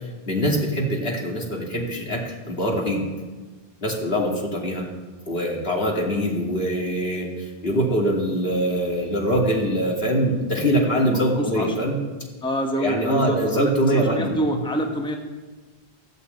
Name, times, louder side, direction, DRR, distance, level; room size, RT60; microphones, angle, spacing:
voice 1, 0.3-3.0 3.8-4.9 5.3-12.0 12.8-14.3, equal, 70° left, -1 dB, 2.9 m, -23 dB
voice 2, 11.4-12.0 12.4-15.2, right 1 dB, 5° left, 2 dB, 1.3 m, -26 dB
14.5 x 8.2 x 8.4 m, 1.3 s
omnidirectional pair, 1.0 m